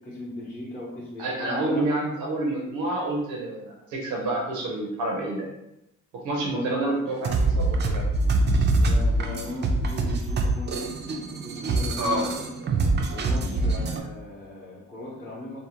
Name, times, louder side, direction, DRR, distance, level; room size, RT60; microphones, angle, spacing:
voice 1, 0.0-1.9 6.5-7.1 8.8-11.0 11.3-12.5 13.1-15.6, left 1 dB, 25° left, -8 dB, 0.7 m, -37 dB
voice 2, 1.2-5.5 6.1-8.0 12.0-12.2, right 2 dB, 75° right, -2 dB, 0.6 m, -28 dB
sound 1, 7.1-14.0, right 2 dB, 35° right, 0.4 m, -24 dB
2.6 x 2.1 x 2.8 m, 0.87 s
cardioid pair, 90°, 30 cm